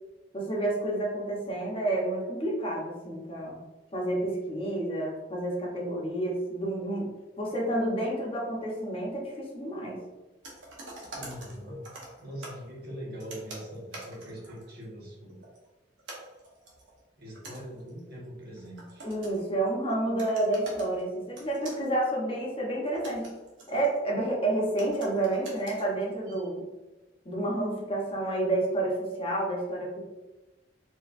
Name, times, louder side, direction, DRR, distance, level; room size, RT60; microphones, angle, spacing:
voice 1, 0.3-3.6 3.9-7.1 7.4-10.0 19.0-23.3 23.7-26.7 27.2-30.1, right 1 dB, 30° left, -3 dB, 0.9 m, -30 dB
sound 1, 10.4-12.6 13.2-14.8 15.3-15.7 16.0-19.6 19.9-20.0 20.2-21.0 21.4-21.9 22.7-24.1 24.8-26.5, right 2 dB, 85° right, 1.1 m, -46 dB
voice 2, 11.1-11.9 12.2-15.4 17.2-19.1, equal, 55° right, -4 dB, 1.3 m, -42 dB
4.4 x 3.0 x 2.6 m, 1.1 s
head